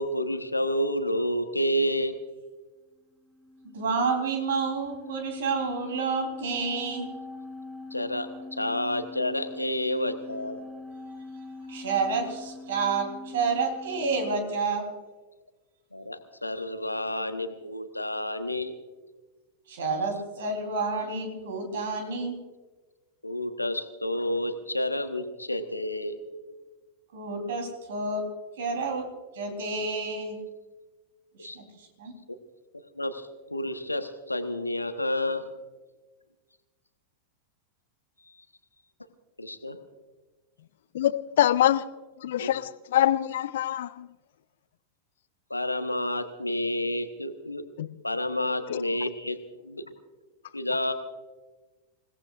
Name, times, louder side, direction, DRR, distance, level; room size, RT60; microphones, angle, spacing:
voice 1, 0.0-2.2 7.9-10.7 15.9-18.7 23.2-26.2 31.4-31.6 32.7-35.5 38.3-38.4 39.4-39.8 42.4-42.5 45.5-47.6 48.0-49.4 49.6-49.9 50.5-50.9, left 1 dB, 85° left, 1.2 m, -30 dB
sound 1, 3.1-14.4, left 2 dB, 25° right, 5.9 m, -43 dB
voice 2, 3.6-7.1 11.7-14.9 19.7-22.3 27.1-28.2 28.6-29.1 29.3-30.4 31.5-32.1, right 4 dB, 60° right, 3.7 m, -29 dB
voice 3, 40.9-41.9 42.2-44.1 47.8-47.9 48.7-48.8, left 12 dB, 60° left, 0.5 m, -25 dB
27.5 x 17.5 x 2.5 m
figure-of-eight pair, 90°, 0 cm